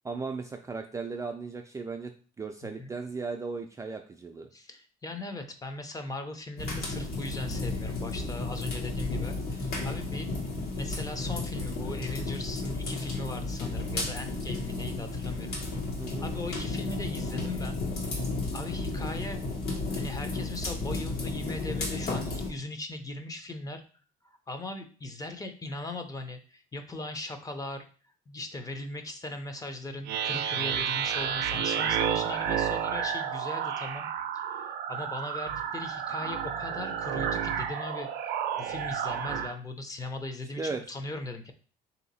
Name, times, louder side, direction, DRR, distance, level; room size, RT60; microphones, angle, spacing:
voice 1, 0.0-2.1 2.4-4.5 16.0-16.3 40.6-40.8, right 4 dB, 20° right, 3 dB, 0.4 m, -36 dB
voice 2, 2.6-2.9 4.5-10.3 10.8-15.6 16.2-17.8 18.5-19.4 19.9-23.8 24.2-27.9 28.3-34.1 34.3-41.5, left 2 dB, 20° left, 7 dB, 0.6 m, -39 dB
sound 1, 6.6-22.5, left 2 dB, 65° left, 1.5 m, -33 dB
sound 2, 30.1-39.5, right 8 dB, 85° right, 0.5 m, -31 dB
3.5 x 2.8 x 4.0 m, 0.39 s
cardioid pair, 110°, 17 cm